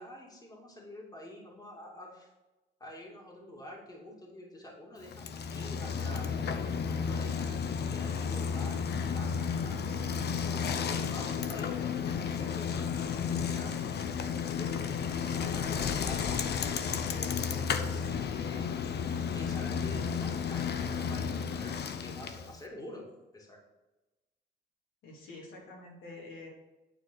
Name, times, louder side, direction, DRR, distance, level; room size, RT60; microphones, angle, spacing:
voice 1, 0.0-2.3 2.8-6.3 6.9-9.8 10.4-13.7 14.6-18.6 19.3-23.0 23.3-23.6, left 1 dB, 20° left, -2 dB, 2.6 m, -48 dB
Bicycle, 5.0-22.6, left 6 dB, 55° left, 0.8 m, -32 dB
voice 2, 25.0-26.5, left 2 dB, 80° left, -4 dB, 3.4 m, -47 dB
9.1 x 4.5 x 6.3 m, 1.1 s
cardioid pair, 90°, 20 cm